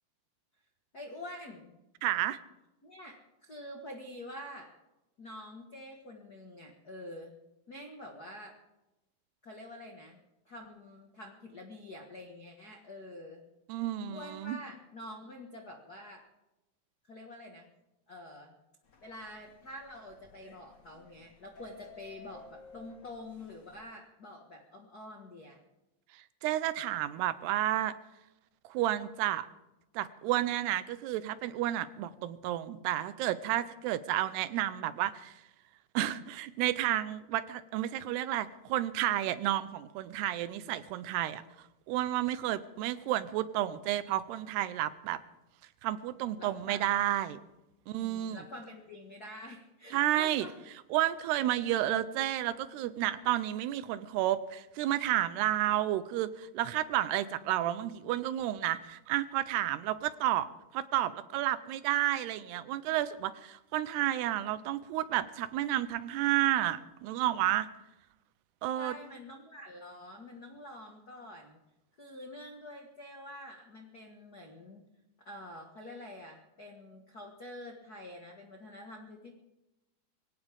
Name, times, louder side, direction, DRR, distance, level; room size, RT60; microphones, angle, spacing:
voice 1, 0.9-1.8 2.8-4.7 5.2-7.3 7.7-8.6 9.4-10.2 10.4-13.4 14.1-16.2 17.0-17.7 18.1-18.6 19.0-25.6 46.4-46.9 48.0-50.5 68.7-71.6 72.0-74.8 75.2-79.3, left 1 dB, 65° left, 2 dB, 0.9 m, -47 dB
voice 2, 2.0-2.4 13.7-14.6 26.4-27.9 28.6-29.5 29.9-35.4 35.9-41.4 41.9-45.2 45.8-47.4 47.9-48.4 49.9-50.5 50.9-60.5 60.7-67.7 68.6-68.9, right 13 dB, 90° right, 14 dB, 2.8 m, -31 dB
sound 1, 18.8-23.8, left 5 dB, 40° left, 1.7 m, -55 dB
23.0 x 17.5 x 3.6 m, 0.97 s
omnidirectional pair, 4.6 m